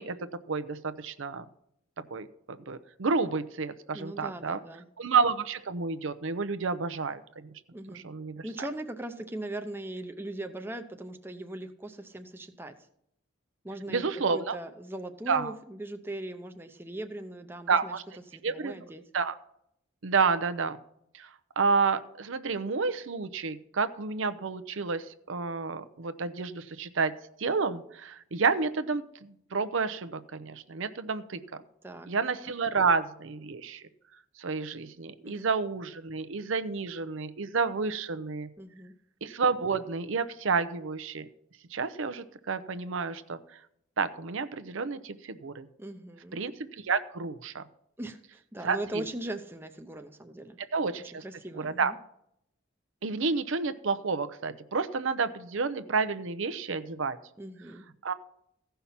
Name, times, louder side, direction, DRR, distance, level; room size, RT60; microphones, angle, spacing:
voice 1, 0.0-1.4 2.1-4.6 5.0-7.5 7.9-8.7 13.9-14.6 15.3-15.5 17.7-18.0 18.4-18.8 19.1-19.4 20.0-20.8 21.1-27.1 27.4-31.4 32.1-33.8 34.4-38.5 39.2-41.3 41.7-43.4 44.0-45.7 46.3-47.6 48.6-49.0 50.7-51.2 51.5-51.9 53.0-57.2 58.0-58.1, right 4 dB, 75° right, 11 dB, 0.6 m, -30 dB
voice 2, 3.9-4.9 7.7-8.0 8.4-12.7 13.6-18.0 18.3-19.0 31.8-32.1 35.2-35.5 38.6-38.9 45.8-46.4 48.0-50.6 51.2-52.0 57.4-57.9, right 1 dB, 10° right, 7 dB, 0.6 m, -40 dB
15.5 x 5.7 x 5.7 m, 0.74 s
head